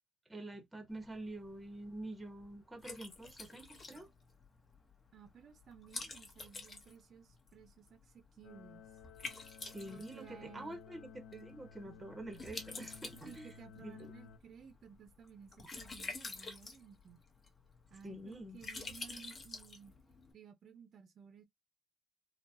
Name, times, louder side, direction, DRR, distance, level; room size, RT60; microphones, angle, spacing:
voice 1, 0.3-4.1 9.6-13.5 13.8-14.1 18.0-18.6 18.9-19.0, right 1 dB, 10° right, 0.8 m, -47 dB
Liquid, 0.9-20.3, left 3 dB, 30° left, 0.8 m, -50 dB
voice 2, 5.1-8.8 9.9-10.8 13.2-17.2 17.9-19.9 20.3-21.4, right 7 dB, 50° right, 0.6 m, -56 dB
sound 1, 8.4-14.4, left 7 dB, 85° left, 0.6 m, -55 dB
3.8 x 2.0 x 2.6 m
cardioid pair, 150°, 0 cm